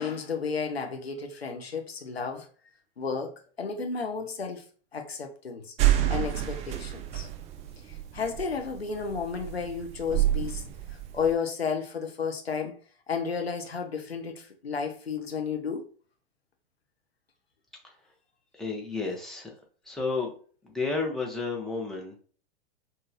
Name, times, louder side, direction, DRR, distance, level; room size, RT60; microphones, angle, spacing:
voice 1, 0.0-2.5 3.0-4.6 4.9-5.7 6.1-7.3 7.9-10.6 11.1-12.8 13.1-15.9, left 5 dB, 85° left, 0.7 m, -32 dB
sound 1, 5.8-11.3, right 13 dB, 25° right, 0.4 m, -28 dB
voice 2, 18.5-19.5 19.9-20.3 20.6-22.2, left 4 dB, ahead, 1.1 m, -31 dB
5.5 x 2.5 x 2.6 m
figure-of-eight pair, 90°, 30 cm